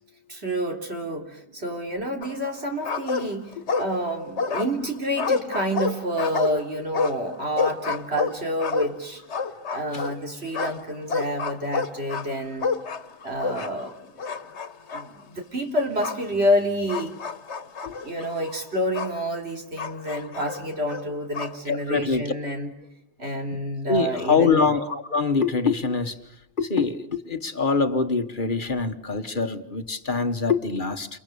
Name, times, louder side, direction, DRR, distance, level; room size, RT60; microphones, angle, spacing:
voice 1, 0.3-9.2 9.7-12.7 13.2-13.9 14.9-17.1 18.0-22.7 23.2-24.6, equal, 70° right, 2 dB, 3.8 m, -28 dB
sound 1, 2.2-2.6 2.8-4.1 4.4-10.2 10.5-13.9 14.2-15.1 16.0-16.2 16.9-19.2 19.8-21.6, left 5 dB, 80° left, 1.6 m, -29 dB
voice 2, 21.7-22.2 23.9-26.2 26.6-31.1, left 4 dB, 50° left, 8 dB, 1.4 m, -24 dB
29.5 x 28.5 x 6.9 m, 0.78 s
omnidirectional pair, 1.1 m